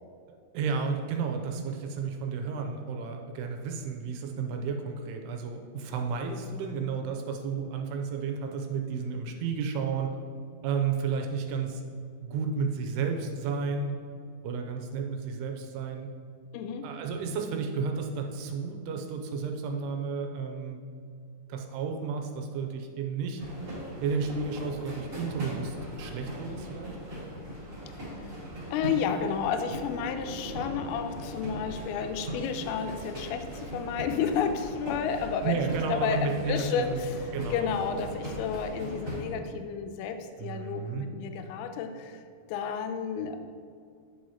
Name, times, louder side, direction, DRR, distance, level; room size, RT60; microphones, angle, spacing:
voice 1, 0.5-10.1 10.6-11.8 12.2-13.9 14.4-16.1 16.8-20.8 21.5-23.4 24.0-27.0 35.1-35.2 35.4-37.0 37.3-37.7 40.4-41.1, right 5 dB, 85° right, 3 dB, 2.7 m, -32 dB
voice 2, 16.5-16.9 28.0-28.3 28.7-42.2 42.5-43.4, left 6 dB, 80° left, 7 dB, 2.4 m, -31 dB
sound 1, 23.4-39.2, equal, 35° right, 1.3 m, -39 dB
9.3 x 6.2 x 2.9 m, 2.3 s
omnidirectional pair, 4.7 m